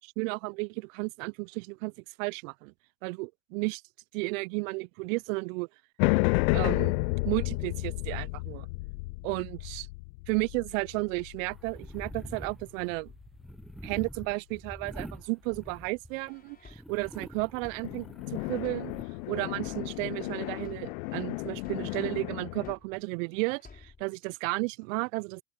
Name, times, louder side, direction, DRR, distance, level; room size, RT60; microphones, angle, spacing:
voice 1, 0.0-1.9 2.2-2.7 3.0-3.8 4.1-5.7 6.5-7.0 7.3-8.7 9.2-9.9 10.3-13.1 13.8-18.9 19.3-25.4, right 28 dB, 60° right, 0.5 m, -33 dB
sound 1, 6.0-12.5 17.8-22.7, left 25 dB, 60° left, 0.7 m, -32 dB
sound 2, 11.5-16.3 16.7-19.1, equal, ahead, 0.4 m, -45 dB
sound 3, 16.2-19.2 19.5-23.2 23.5-24.1, left 5 dB, 20° left, 5.7 m, -54 dB
open air
hypercardioid pair, 100°, 46 cm